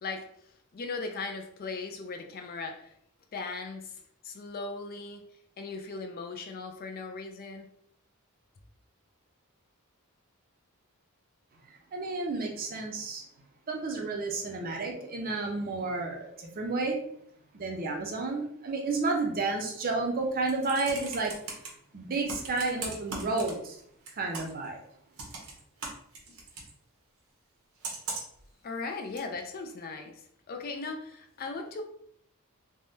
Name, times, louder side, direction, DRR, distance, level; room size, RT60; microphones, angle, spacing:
voice 1, 0.7-2.9 3.3-5.2 5.6-7.7 28.6-31.8, left 3 dB, 40° left, 5 dB, 0.4 m, -38 dB
voice 2, 11.9-13.2 13.7-17.0 17.5-21.3 21.9-23.8 24.2-24.8, right 3 dB, 40° right, 2 dB, 0.5 m, -31 dB
Computer keyboard, 20.3-21.7 22.3-23.8 24.1-24.7 25.2-26.7 27.8-28.4 29.2-29.3, right 3 dB, 70° right, 0.8 m, -38 dB
3.4 x 2.2 x 2.7 m, 0.68 s
head